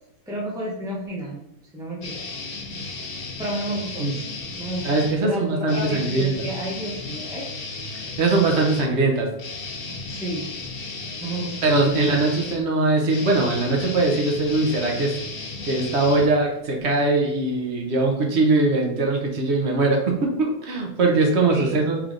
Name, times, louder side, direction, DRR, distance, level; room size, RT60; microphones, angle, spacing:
voice 1, 0.3-1.4 1.7-2.2 3.4-4.2 4.5-4.9 5.2-7.5 10.1-10.5 11.2-11.8 21.5-21.8, right 1 dB, 5° right, -4 dB, 0.4 m, -31 dB
sound 1, 2.0-5.2 5.6-16.8, left 3 dB, 60° left, 0.6 m, -34 dB
voice 2, 4.8-6.5 7.9-9.3 11.6-15.1 15.6-22.0, right 2 dB, 55° right, 1 dB, 0.8 m, -21 dB
3.5 x 3.3 x 3.7 m, 0.79 s
omnidirectional pair, 1.7 m